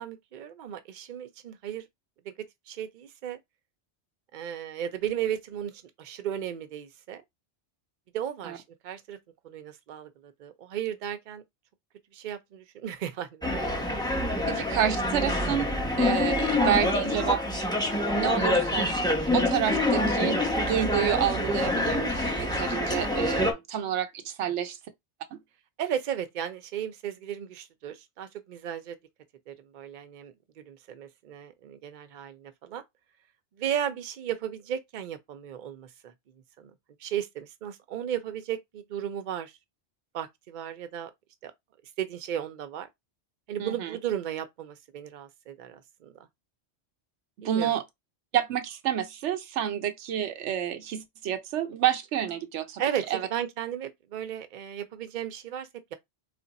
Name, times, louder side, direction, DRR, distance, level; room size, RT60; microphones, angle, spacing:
voice 1, 0.0-1.9 2.3-2.4 2.7-3.4 4.3-7.2 8.1-9.2 9.4-11.4 12.1-13.8 25.8-29.0 29.5-32.8 33.6-36.1 36.6-36.7 37.0-39.5 40.1-41.1 41.4-41.5 42.0-42.9 43.5-46.2 47.4-47.7 52.8-55.9, right 10 dB, 55° right, 0.6 m, -35 dB
sound 1, 13.4-23.5, left 1 dB, 5° left, 0.6 m, -26 dB
voice 2, 14.5-15.7 16.0-17.7 18.1-24.8 25.3-25.4 43.6-43.9 47.4-47.8 48.3-52.8 53.1-53.2, right 10 dB, 85° right, 1.0 m, -29 dB
3.3 x 2.5 x 4.0 m
omnidirectional pair, 1.1 m